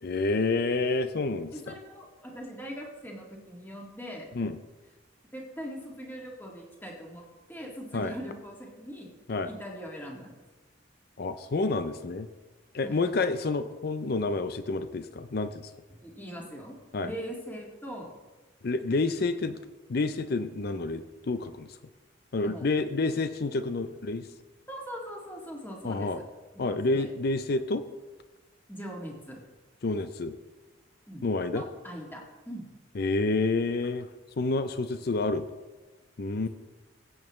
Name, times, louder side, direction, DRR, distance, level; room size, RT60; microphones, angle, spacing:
voice 1, 0.0-1.7 4.3-4.6 7.9-8.1 9.3-9.5 11.2-12.3 12.7-15.7 16.9-17.1 18.6-19.6 19.9-21.8 22.3-24.3 25.8-26.2 26.6-27.8 29.8-30.4 31.2-31.6 32.9-34.1 34.4-35.5 36.2-36.5, left 3 dB, 50° left, 10 dB, 0.5 m, -29 dB
voice 2, 1.5-4.3 5.3-9.1 9.5-10.3 12.8-13.0 16.0-16.8 17.0-18.1 22.4-22.7 24.7-26.1 26.5-27.1 28.7-29.4 31.1-32.7, equal, 10° left, -1 dB, 1.9 m, -41 dB
21.5 x 8.7 x 3.1 m, 1.2 s
head